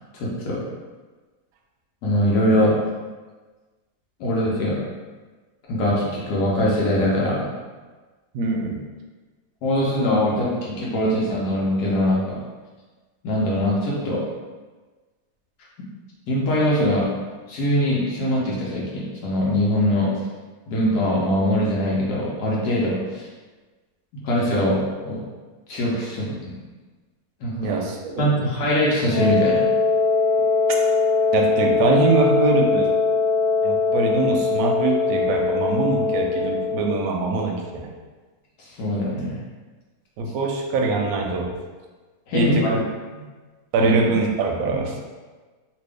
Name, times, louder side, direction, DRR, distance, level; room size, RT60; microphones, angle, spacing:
voice 1, 0.2-0.6 2.0-2.8 4.2-4.8 5.7-7.5 9.6-12.4 13.2-14.2 16.3-17.1 17.5-20.1 20.7-23.3 24.2-25.2 25.7-26.6 27.4-27.7 28.2-29.6 38.8-39.4 42.3-42.7 43.8-43.9, left 1 dB, 80° left, -5 dB, 1.3 m, -22 dB
voice 2, 8.3-8.8 27.6-28.2 31.3-32.9 33.6-37.6 40.2-41.5 42.3-42.8 43.7-45.0, right 3 dB, 75° right, 1 dB, 1.0 m, -23 dB
Wind instrument woodwind instrument, 29.1-37.0, left 4 dB, 40° right, 0.7 m, -21 dB
2.9 x 2.6 x 3.3 m, 1.3 s
omnidirectional pair, 1.7 m